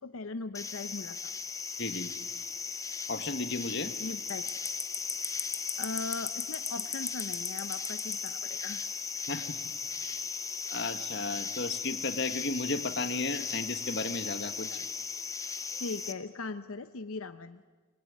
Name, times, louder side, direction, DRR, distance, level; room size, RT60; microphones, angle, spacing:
voice 1, 0.0-1.3 4.0-4.4 5.8-8.9 14.7-14.8 15.8-17.6, left 3 dB, 85° left, 10 dB, 0.8 m, -39 dB
sound 1, 0.5-16.1, left 5 dB, 15° left, 0.8 m, -36 dB
voice 2, 1.8-2.1 3.1-3.9 9.3-9.6 9.9-10.2 10.7-14.8, left 3 dB, 55° left, 9 dB, 1.5 m, -34 dB
25.5 x 21.5 x 9.4 m, 1.3 s
head